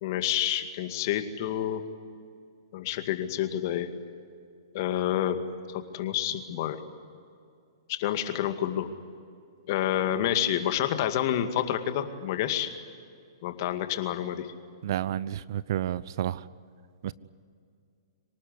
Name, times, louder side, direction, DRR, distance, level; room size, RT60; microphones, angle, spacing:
voice 1, 0.0-1.8 2.7-3.9 4.7-5.4 5.7-6.8 7.9-8.9 9.7-12.7 13.4-14.5, left 11 dB, 50° left, 8 dB, 2.2 m, -28 dB
voice 2, 14.8-16.4 17.0-17.1, right 11 dB, 55° right, 19 dB, 0.7 m, -30 dB
25.5 x 18.5 x 9.6 m, 2.3 s
hypercardioid pair, 125°, 2 cm